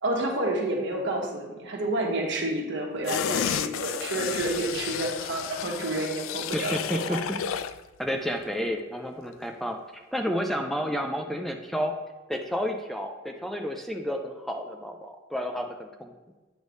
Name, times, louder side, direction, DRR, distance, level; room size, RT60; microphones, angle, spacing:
voice 1, 0.0-7.2, right 1 dB, 65° right, 0 dB, 1.3 m, -29 dB
sound 1, 3.1-7.8 8.2-8.3, left 9 dB, 85° left, 0.3 m, -32 dB
voice 2, 6.5-7.4 8.0-9.8 10.1-11.9 12.3-16.1, equal, ahead, 3 dB, 0.4 m, -31 dB
8.1 x 3.2 x 5.3 m, 1.2 s
head